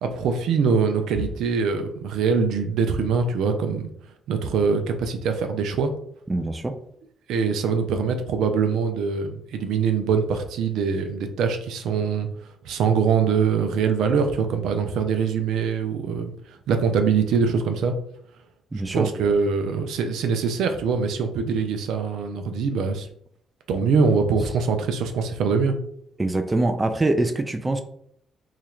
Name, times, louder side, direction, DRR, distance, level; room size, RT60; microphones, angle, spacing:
voice 1, 0.0-3.9 4.3-5.9 7.3-12.3 12.6-16.3 16.7-17.9 18.9-23.1 23.7-25.7, right 5 dB, 80° right, 6 dB, 0.5 m, -23 dB
voice 2, 6.3-6.7 18.7-19.1 26.2-27.8, right 2 dB, 20° right, 6 dB, 0.4 m, -23 dB
2.9 x 2.5 x 4.3 m, 0.68 s
cardioid pair, 90°, 0 cm